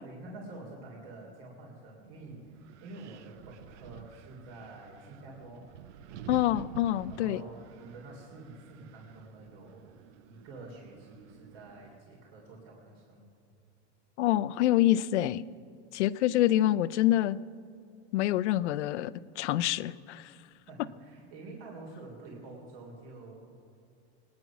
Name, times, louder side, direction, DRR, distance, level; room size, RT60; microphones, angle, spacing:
voice 1, 0.0-5.7 6.1-6.4 7.1-9.9 10.2-13.2 20.7-23.4, right 2 dB, 55° right, -1 dB, 3.4 m, -48 dB
Wind, 2.0-12.0, right 10 dB, 85° right, 0.8 m, -50 dB
voice 2, 6.3-7.4 14.2-15.4 15.9-17.4 18.1-20.3, left 14 dB, 80° left, 15 dB, 0.6 m, -26 dB
21.0 x 9.8 x 6.0 m, 2.5 s
supercardioid pair, 170°, 34 cm